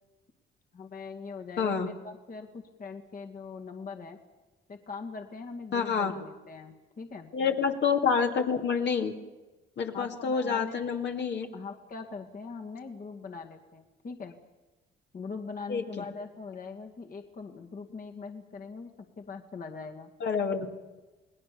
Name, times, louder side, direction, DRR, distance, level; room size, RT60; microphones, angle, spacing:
voice 1, 0.7-4.2 4.7-7.3 9.9-11.0 11.5-14.4 15.1-20.1, left 4 dB, 45° left, 3 dB, 2.2 m, -42 dB
voice 2, 1.6-1.9 5.7-6.1 7.3-9.1 9.8-11.5 15.7-16.0 20.2-20.7, left 6 dB, 65° left, 3 dB, 2.5 m, -28 dB
28.5 x 19.5 x 6.9 m, 1.2 s
cardioid pair, 90°, 20 cm